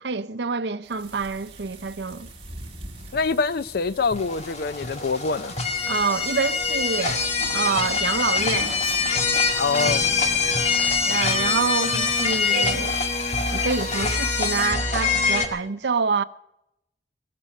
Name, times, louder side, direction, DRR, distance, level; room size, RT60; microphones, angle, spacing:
voice 1, 0.0-2.3 5.9-7.3 7.5-8.8 11.0-13.0 13.5-16.2, right 5 dB, 75° right, 0.7 m, -26 dB
sound 1, 0.8-14.7, right 2 dB, 35° right, 3.0 m, -43 dB
voice 2, 3.1-5.6 9.6-10.1, left 4 dB, 60° left, 0.5 m, -25 dB
sound 2, 4.1-15.5, left 4 dB, 40° left, 2.0 m, -24 dB
sound 3, 8.7-11.8, left 2 dB, 90° left, 4.4 m, -42 dB
18.0 x 12.5 x 6.5 m
head